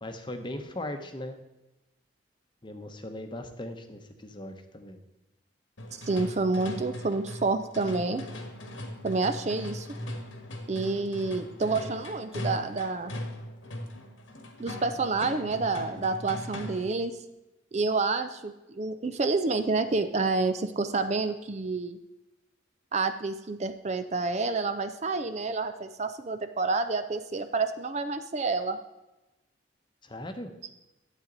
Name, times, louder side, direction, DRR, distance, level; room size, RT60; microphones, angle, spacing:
voice 1, 0.0-1.4 2.6-5.0 30.0-30.5, left 1 dB, 25° left, 6 dB, 0.9 m, -39 dB
sound 1, 5.8-17.0, left 1 dB, 90° left, 1.5 m, -39 dB
voice 2, 6.0-8.2 9.0-9.9 10.7-13.1 14.6-17.1 17.7-22.0 22.9-28.8, right 3 dB, 35° right, 9 dB, 0.5 m, -29 dB
12.0 x 8.2 x 4.0 m, 0.99 s
head